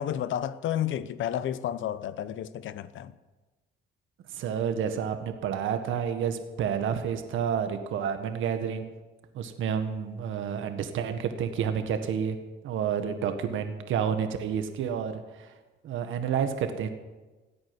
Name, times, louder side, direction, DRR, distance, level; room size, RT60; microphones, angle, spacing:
voice 1, 0.0-3.1, left 10 dB, 75° left, 0.9 m, -31 dB
voice 2, 4.3-8.9 9.3-12.4 12.6-15.5 15.8-16.9, right 7 dB, 80° right, 1.7 m, -30 dB
17.0 x 8.8 x 9.8 m
cardioid pair, 90°, 20 cm